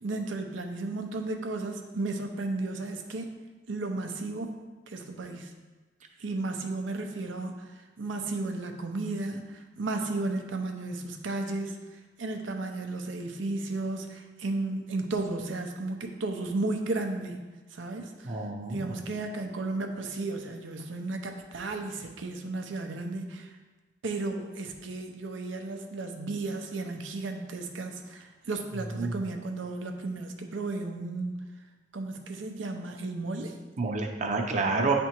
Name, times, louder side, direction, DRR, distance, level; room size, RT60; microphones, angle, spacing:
voice 1, 0.0-3.3 3.7-4.6 4.9-5.5 6.2-7.7 8.0-11.8 12.2-17.4 17.7-18.4 18.7-23.5 24.0-31.4 31.9-33.6, right 2 dB, 85° right, 4 dB, 0.6 m, -34 dB
voice 2, 18.2-19.0 29.0-29.1 33.8-34.9, right 3 dB, 40° right, 3 dB, 0.6 m, -28 dB
9.3 x 3.4 x 3.0 m, 1.3 s
head